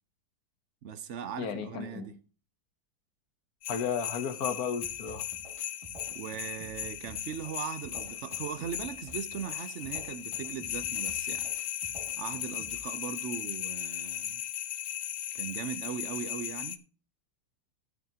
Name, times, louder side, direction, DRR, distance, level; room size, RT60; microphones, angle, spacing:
voice 1, 0.8-2.2 6.1-11.5 12.2-14.4 15.3-16.8, right 8 dB, 65° right, 0.7 m, -39 dB
voice 2, 1.4-2.1 3.7-5.2, left 7 dB, 55° left, 1.4 m, -33 dB
sound 1, 3.6-16.8, left 12 dB, 85° left, 0.7 m, -37 dB
sound 2, 4.8-12.8, right 1 dB, 15° right, 1.8 m, -51 dB
14.0 x 7.4 x 2.8 m
omnidirectional pair, 2.0 m